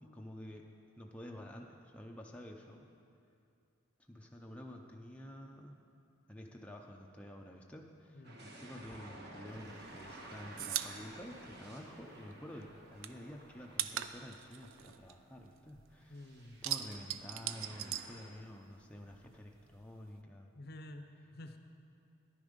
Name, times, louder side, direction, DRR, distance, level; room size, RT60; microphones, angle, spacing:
voice 1, 0.1-2.9 4.1-5.8 6.3-20.5, left 1 dB, 5° left, 0 dB, 0.5 m, -50 dB
sound 1, 8.2-14.8 15.2-15.3 16.1-18.3, right 1 dB, 55° right, 1.4 m, -53 dB
sound 2, 9.5-12.3 12.6-15.9 16.2-18.8 19.1-20.2, right 11 dB, 80° right, 0.4 m, -41 dB
voice 2, 16.1-16.6 20.6-21.6, left 1 dB, 50° left, 7 dB, 0.7 m, -50 dB
11.0 x 9.8 x 5.2 m, 2.5 s
head